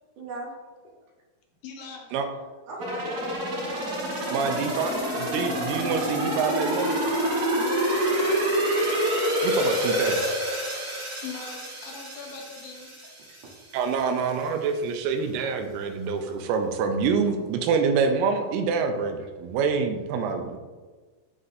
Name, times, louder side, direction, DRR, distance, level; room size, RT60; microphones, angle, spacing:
voice 1, 0.2-0.5 2.7-3.3 3.5-4.5 7.5-7.9 16.0-16.1 16.5-16.6, right 2 dB, 65° right, -4 dB, 2.6 m, -40 dB
voice 2, 1.6-2.2 11.2-13.2, left 5 dB, 75° left, 1 dB, 2.5 m, -41 dB
sound 1, 2.8-13.5 13.9-14.0, equal, 50° right, 3.0 m, -27 dB
voice 3, 4.3-6.9 9.4-10.2 13.7-20.6, right 5 dB, 85° right, 6 dB, 2.6 m, -26 dB
11.0 x 4.0 x 2.7 m, 1.4 s
omnidirectional pair, 4.5 m